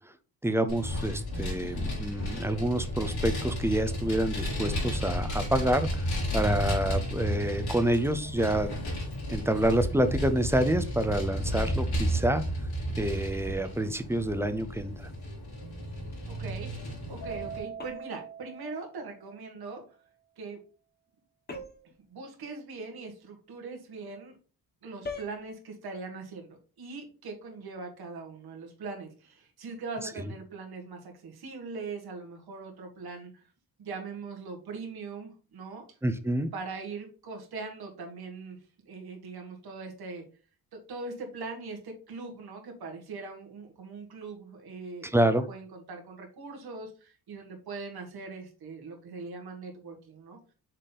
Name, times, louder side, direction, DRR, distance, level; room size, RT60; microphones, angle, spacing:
voice 1, 0.4-8.7 9.3-12.4 13.0-15.1 36.0-36.5 45.1-45.4, right 1 dB, 5° right, 9 dB, 0.4 m, -28 dB
Vehicle, 0.7-17.6, equal, 70° left, 3.4 m, -32 dB
voice 2, 16.3-16.7 17.1-19.8 20.4-20.6 22.1-24.4 24.8-33.5 33.8-35.8 36.5-38.6 38.8-40.2 40.9-50.5, right 4 dB, 70° right, 2 dB, 1.8 m, -41 dB
Keyboard (musical), 17.2-19.7, right 7 dB, 45° left, 2.1 m, -43 dB
sound 1, 17.8-18.3 21.5-22.0 25.0-25.4, left 3 dB, 25° left, 1.0 m, -40 dB
6.4 x 3.9 x 4.0 m, 0.37 s
wide cardioid pair, 175°, 39 cm